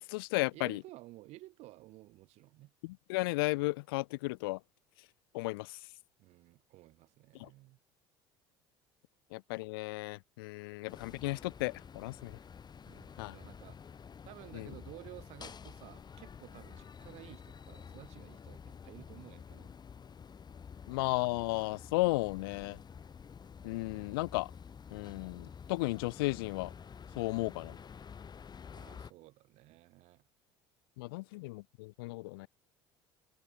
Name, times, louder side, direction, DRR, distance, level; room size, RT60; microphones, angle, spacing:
voice 1, 0.0-0.8 2.8-4.6 5.3-5.8 7.4-7.5 9.3-12.4 13.2-13.4 14.5-14.7 20.9-22.8 23.6-24.5 24.9-26.7 27.2-27.8 31.0-32.5, left 23 dB, 80° left, 0.4 m, -34 dB
voice 2, 0.5-2.7 6.2-7.8 12.9-13.8 14.2-19.7 28.7-30.2, right 18 dB, 65° right, 4.9 m, -53 dB
sound 1, 10.9-29.1, left 6 dB, 35° left, 2.9 m, -50 dB
hypercardioid pair, 70°, 12 cm